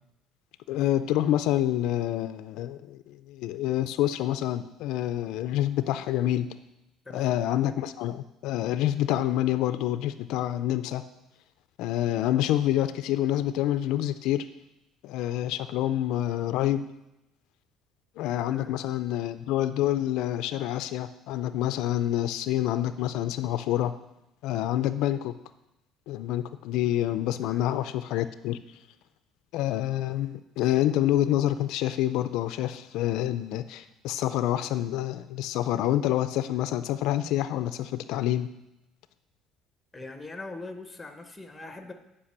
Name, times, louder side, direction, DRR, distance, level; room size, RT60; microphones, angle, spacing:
voice 1, 0.7-6.5 7.1-11.0 11.8-14.5 15.0-16.9 18.2-23.9 24.4-25.3 26.1-28.6 29.5-38.5, left 13 dB, 75° left, 11 dB, 0.4 m, -27 dB
voice 2, 7.0-7.4 18.5-18.7 27.4-27.7 39.9-41.9, left 2 dB, 10° left, 6 dB, 0.8 m, -41 dB
8.6 x 4.9 x 6.5 m, 0.89 s
cardioid pair, 150°, 0 cm